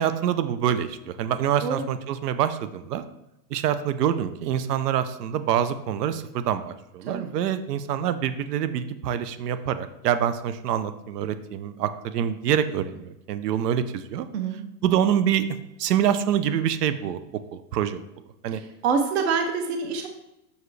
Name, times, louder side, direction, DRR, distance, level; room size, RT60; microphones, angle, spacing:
voice 1, 0.0-3.0 3.5-14.3 14.8-15.5 15.8-17.2 17.5-18.0 18.4-18.6, right 9 dB, 80° right, 12 dB, 0.8 m, -26 dB
voice 2, 18.5-20.1, right 5 dB, 45° right, 5 dB, 0.6 m, -26 dB
7.3 x 6.6 x 3.2 m, 0.90 s
supercardioid pair, 180°, 47 cm